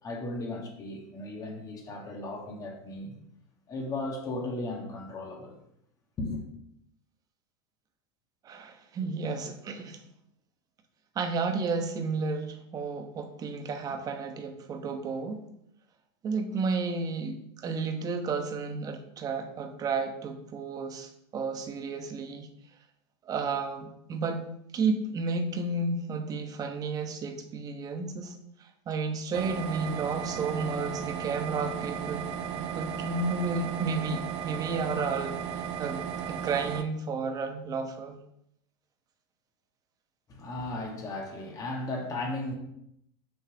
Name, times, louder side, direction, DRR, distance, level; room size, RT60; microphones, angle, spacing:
voice 1, 0.0-3.2 3.7-5.6 6.2-6.5 40.3-42.5, left 2 dB, 25° left, 1.7 m, -36 dB
voice 2, 8.4-10.0 11.1-15.4 16.2-22.5 23.2-24.4 24.7-28.3 28.6-32.3 32.6-36.0 36.3-38.2, right 4 dB, 25° right, 1.1 m, -32 dB
sound 1, 29.3-36.8, right 8 dB, 45° right, 0.7 m, -35 dB
6.6 x 4.5 x 5.8 m
supercardioid pair, 140°, 14 cm